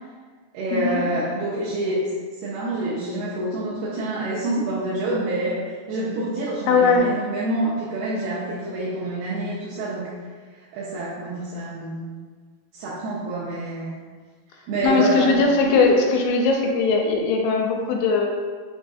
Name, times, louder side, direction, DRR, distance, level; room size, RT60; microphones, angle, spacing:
voice 1, 0.5-2.1 2.4-5.6 5.9-10.1 10.7-12.1 12.7-14.0 14.7-15.4, right 1 dB, 90° right, -8 dB, 2.6 m, -27 dB
voice 2, 6.7-7.1 14.8-18.3, left 4 dB, 85° left, 1 dB, 2.5 m, -19 dB
6.2 x 2.6 x 2.4 m, 1.5 s
omnidirectional pair, 4.4 m